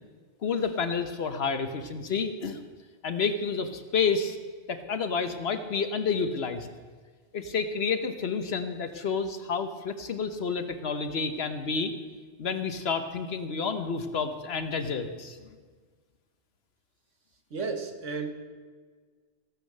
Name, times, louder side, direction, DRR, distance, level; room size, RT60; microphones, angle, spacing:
voice 1, 0.4-2.6 3.0-4.4 4.7-6.7 7.3-11.9 12.4-15.4, left 5 dB, 60° left, 9 dB, 1.2 m, -29 dB
voice 2, 17.5-18.3, right 4 dB, 85° right, 5 dB, 1.8 m, -33 dB
16.5 x 8.5 x 6.5 m, 1.5 s
omnidirectional pair, 1.2 m